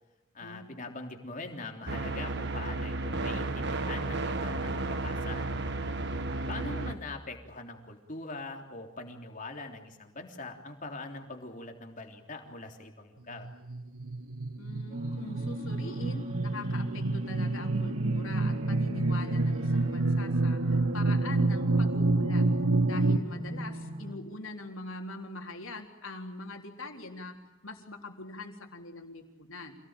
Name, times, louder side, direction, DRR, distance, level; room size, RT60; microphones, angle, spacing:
voice 1, 0.3-5.4 6.5-13.5, left 3 dB, 35° left, 4 dB, 3.5 m, -42 dB
sound 1, 1.9-7.0, right 2 dB, 55° right, 1.7 m, -33 dB
sound 2, 13.4-23.2, right 2 dB, 90° right, 1.5 m, -28 dB
voice 2, 14.6-22.4 22.8-27.3 27.6-29.8, left 2 dB, 70° left, 3 dB, 3.9 m, -43 dB
sound 3, 14.9-24.2, right 1 dB, 35° right, 3.2 m, -41 dB
27.5 x 18.5 x 9.0 m, 1.0 s
head